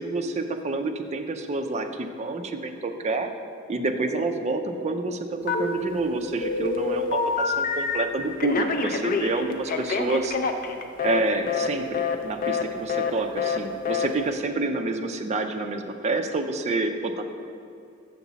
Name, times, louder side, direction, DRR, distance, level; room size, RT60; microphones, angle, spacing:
voice 1, 0.0-3.3 3.7-10.4 11.0-17.2, right 2 dB, 30° right, 5 dB, 0.4 m, -28 dB
Telephone, 5.5-6.1 6.4-8.0 8.4-11.2 11.5-11.7 11.9-12.2 12.4-12.6 12.9-13.1 13.4-13.6 13.8-14.1, left 4 dB, 45° left, 0.4 m, -26 dB
7.2 x 5.9 x 3.9 m, 2.4 s
head